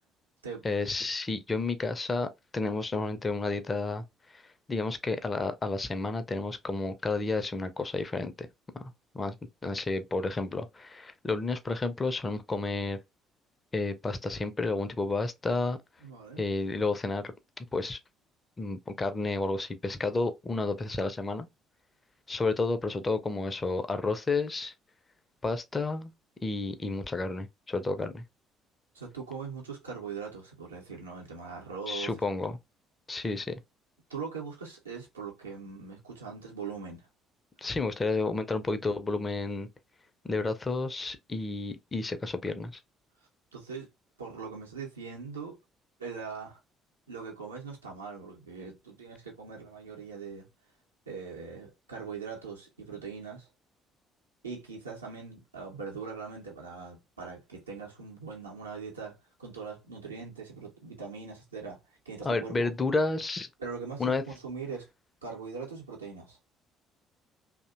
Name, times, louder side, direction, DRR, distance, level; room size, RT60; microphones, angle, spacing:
voice 1, 0.6-4.4 4.7-8.5 8.8-9.3 9.6-13.0 13.7-15.8 16.4-17.3 17.7-18.0 18.6-21.5 22.3-24.7 25.4-26.1 26.4-28.2 31.9-32.5 33.1-33.6 37.6-39.7 40.2-42.8 62.2-63.5 64.0-64.2, left 3 dB, 25° left, 0.4 m, -31 dB
voice 2, 16.0-16.5 28.9-32.1 34.1-37.1 43.5-43.9 44.2-45.6 46.0-46.6 47.1-50.5 51.1-53.5 54.4-61.8 62.1-62.7 63.6-64.9 65.2-66.4, right 5 dB, 85° right, 0.6 m, -41 dB
2.6 x 2.1 x 2.4 m
figure-of-eight pair, 50°, 0 cm